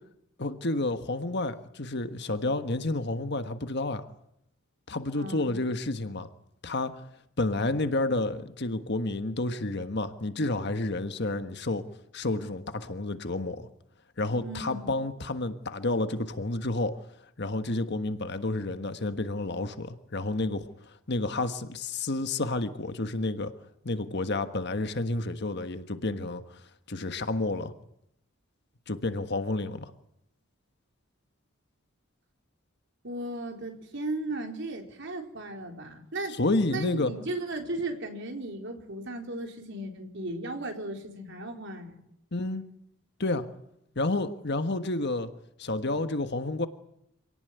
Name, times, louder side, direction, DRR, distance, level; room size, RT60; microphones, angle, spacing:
voice 1, 0.4-4.1 4.9-6.3 6.6-6.9 7.4-11.8 12.1-13.7 14.2-17.0 17.4-23.5 23.8-26.6 26.9-27.7 28.9-29.9 36.3-37.1 42.3-42.6 43.2-43.5 43.9-45.3 45.6-46.7, left 2 dB, 55° left, 9 dB, 1.5 m, -30 dB
voice 2, 5.2-5.6 14.4-14.9 33.0-36.4 36.7-42.0, right 2 dB, 60° right, 4 dB, 4.2 m, -36 dB
27.0 x 18.0 x 9.4 m, 0.77 s
head